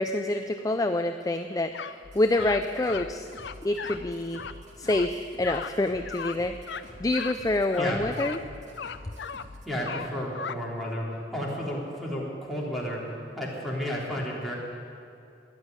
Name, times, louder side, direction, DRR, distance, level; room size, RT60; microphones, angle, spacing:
voice 1, 0.0-3.3 3.6-4.4 4.8-6.6 7.0-8.4, left 2 dB, 20° left, 7 dB, 0.4 m, -27 dB
sound 1, 1.7-2.0 2.3-3.1 3.3-4.0 4.3-4.5 4.9-5.1 5.4-5.7 6.0-6.4 6.6-6.8 7.1-7.4 7.7-8.4 8.8-9.5 9.8-10.6, left 6 dB, 80° left, 0.6 m, -37 dB
sound 2, 2.0-9.7, left 1 dB, 40° right, 2.2 m, -47 dB
voice 2, 9.6-11.0 11.3-13.0 13.3-14.5, equal, ahead, -5 dB, 3.3 m, -32 dB
13.5 x 11.0 x 9.8 m, 2.6 s
head